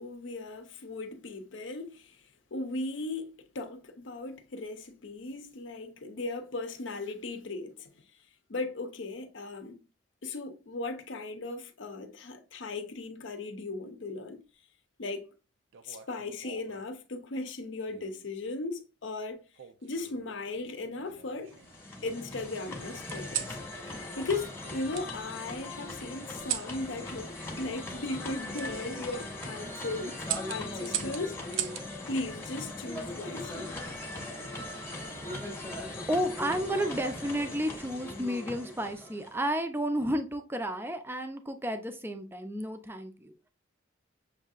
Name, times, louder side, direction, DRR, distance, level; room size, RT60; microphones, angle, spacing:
voice 1, 0.0-2.2 2.5-8.0 8.5-9.8 10.2-14.4 15.0-15.3 15.8-19.4 19.8-21.6 22.0-30.2 30.5-31.4 32.1-33.8, left 3 dB, 70° left, 0.7 m, -37 dB
sound 1, 15.7-16.8 17.9-18.3 19.6-20.3 20.9-21.8 23.1-23.6 24.9-25.1 26.4-26.7 28.5-28.7 29.2-29.5 30.2-31.9 33.4-33.8, right 10 dB, 70° right, 0.4 m, -38 dB
sound 2, 21.4-39.4, left 2 dB, 10° left, 0.8 m, -40 dB
voice 2, 36.1-43.3, equal, 10° right, 0.5 m, -32 dB
6.6 x 2.7 x 2.4 m
head